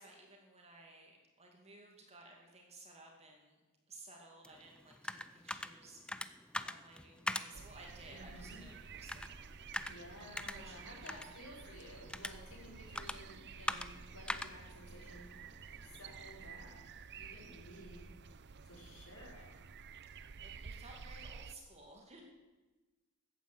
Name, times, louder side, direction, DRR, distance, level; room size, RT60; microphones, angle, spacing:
voice 1, 0.0-3.6 3.9-9.8 10.5-11.3 20.1-22.2, right 2 dB, 30° right, 1 dB, 2.4 m, -57 dB
sound 1, 4.4-16.1, left 1 dB, 5° left, 0.5 m, -45 dB
sound 2, 7.5-21.5, right 5 dB, 50° right, 0.6 m, -52 dB
voice 2, 8.1-8.6 9.8-15.3 15.8-16.9 17.1-18.0 18.6-19.5, equal, 65° left, -5 dB, 6.0 m, -54 dB
14.5 x 9.3 x 7.9 m, 1.2 s
head